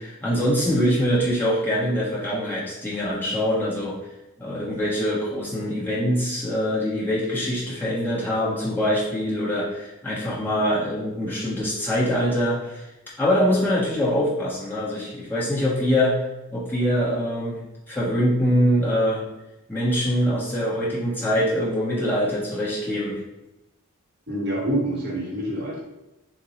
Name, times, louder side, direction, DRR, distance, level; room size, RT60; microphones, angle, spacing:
voice 1, 0.0-3.9 4.4-12.8 13.2-16.2 16.5-17.6 17.9-19.2 19.7-23.2, equal, 10° left, -8 dB, 1.0 m, -24 dB
voice 2, 24.3-25.8, right 1 dB, 45° right, -4 dB, 1.1 m, -26 dB
6.6 x 2.2 x 3.0 m, 0.96 s
head